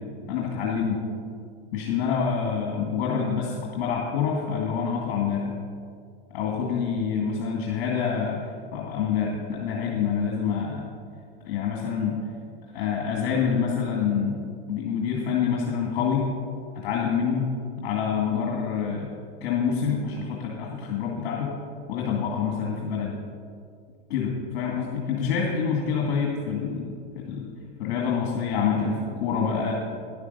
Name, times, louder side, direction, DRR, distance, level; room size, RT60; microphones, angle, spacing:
voice 1, 0.3-1.0 1.7-5.5 6.3-10.8 11.4-12.2 12.7-14.4 14.7-16.2 16.8-17.4 17.8-19.1 19.4-21.5 21.9-23.1 24.1-27.5 27.8-29.7, left 6 dB, 60° left, -1 dB, 2.1 m, -26 dB
11.0 x 8.2 x 5.4 m, 2.2 s
hypercardioid pair, 125°, 31 cm